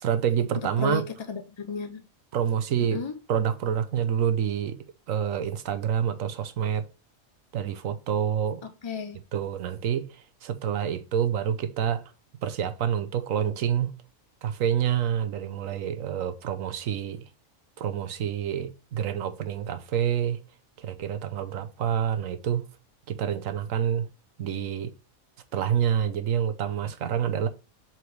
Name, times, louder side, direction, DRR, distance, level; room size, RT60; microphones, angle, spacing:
voice 1, 0.0-1.0 2.3-3.0 3.3-4.8 5.1-6.8 7.5-8.7 9.3-12.0 12.4-13.9 14.4-17.3 17.8-20.4 20.8-22.7 23.1-24.1 24.4-24.9 25.5-27.5, right 9 dB, 75° right, 1.2 m, -27 dB
voice 2, 0.8-2.1 2.8-3.2 8.8-9.2, left 4 dB, 40° left, 0.4 m, -33 dB
7.8 x 4.6 x 3.3 m
omnidirectional pair, 1.4 m